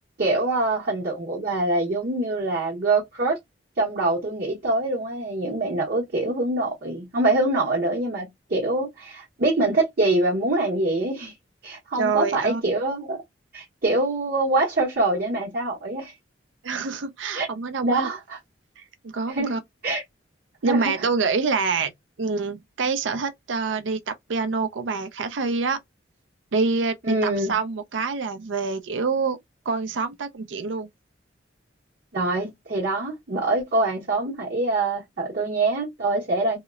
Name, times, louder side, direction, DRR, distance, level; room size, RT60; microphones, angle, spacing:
voice 1, 0.2-3.4 3.8-11.3 11.6-13.2 13.5-16.1 17.3-17.5 17.8-18.4 19.3-19.6 19.8-20.0 20.7-20.9 27.0-27.5 32.1-36.6, right 2 dB, 55° right, 0.9 m, -24 dB
voice 2, 12.0-12.6 16.6-18.1 18.8-19.6 20.6-21.9 22.2-25.8 26.5-27.0 27.2-29.4 29.7-30.9, right 4 dB, 70° right, 0.5 m, -26 dB
2.8 x 2.0 x 2.3 m
head